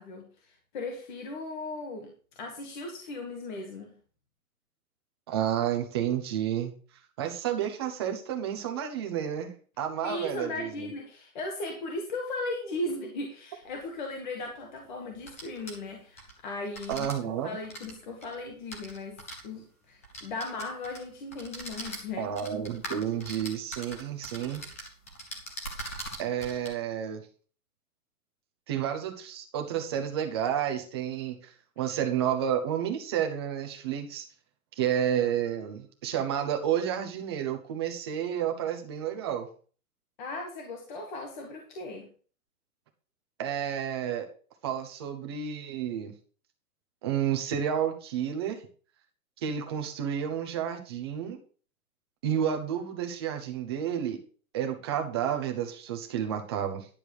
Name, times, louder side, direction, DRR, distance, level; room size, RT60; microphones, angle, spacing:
voice 1, 0.0-2.1 2.4-3.9 10.0-22.3 40.2-42.1, left 2 dB, 30° left, 1 dB, 1.7 m, -37 dB
voice 2, 5.3-6.7 7.2-9.5 9.8-10.9 16.9-17.5 22.2-24.6 26.2-27.2 28.7-34.2 34.8-39.5 43.4-44.3 44.6-46.1 47.0-48.6 49.4-51.4 52.2-54.2 54.5-56.9, right 9 dB, 20° right, 4 dB, 0.8 m, -30 dB
sound 1, 13.7-13.8 15.1-16.3 16.7-17.1 17.6-19.4 20.0-21.0 21.3-26.7, right 1 dB, 10° left, 0.5 m, -41 dB
10.5 x 6.8 x 4.7 m, 0.41 s
hypercardioid pair, 175°, 44 cm